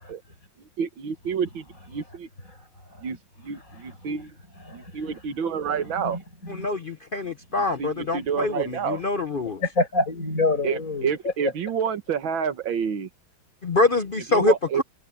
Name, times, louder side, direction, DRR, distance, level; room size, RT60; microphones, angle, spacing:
voice 1, 0.8-2.3 3.0-3.2 3.4-4.3 4.7-6.2 7.8-9.0 10.6-13.1 14.3-14.8, right 7 dB, 85° right, 2.2 m, -28 dB
voice 2, 2.5-3.2 3.5-4.2 4.6-5.2 5.7-6.7 7.7-7.8 9.6-11.5 12.4-12.5, left 3 dB, 40° left, 7.1 m, -29 dB
voice 3, 6.5-9.6 13.6-14.8, left 3 dB, 60° left, 0.5 m, -25 dB
omnidirectional pair, 2.1 m